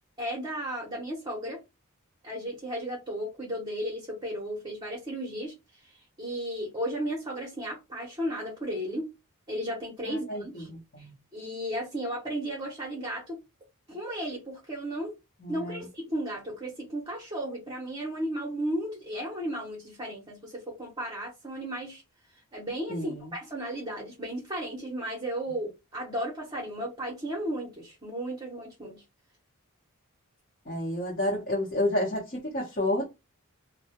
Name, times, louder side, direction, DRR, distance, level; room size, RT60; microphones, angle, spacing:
voice 1, 0.2-1.6 2.2-5.5 5.8-9.1 9.5-10.7 11.0-11.1 11.3-13.4 13.9-15.1 15.5-22.0 22.5-29.0, right 1 dB, 20° right, 0.8 m, -34 dB
voice 2, 10.0-11.1 15.4-15.9 22.9-23.3 30.6-33.1, left 1 dB, 40° left, 0.9 m, -30 dB
2.2 x 2.1 x 2.8 m
head